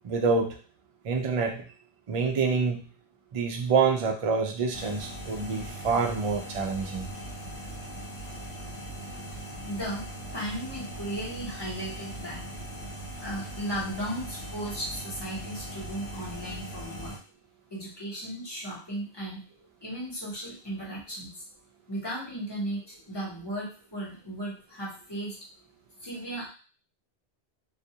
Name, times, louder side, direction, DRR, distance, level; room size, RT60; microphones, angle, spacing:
voice 1, 0.0-0.6 1.0-1.6 2.1-2.8 3.3-7.1, right 5 dB, 65° right, 1 dB, 0.3 m, -26 dB
sound 1, 4.7-17.2, right 1 dB, 75° left, 0.9 m, -40 dB
voice 2, 9.6-10.0 10.3-12.4 13.1-17.2 17.7-19.4 19.8-21.4 21.9-25.4 26.0-26.5, right 1 dB, 25° left, -6 dB, 0.8 m, -36 dB
2.2 x 2.1 x 2.7 m, 0.37 s
omnidirectional pair, 1.1 m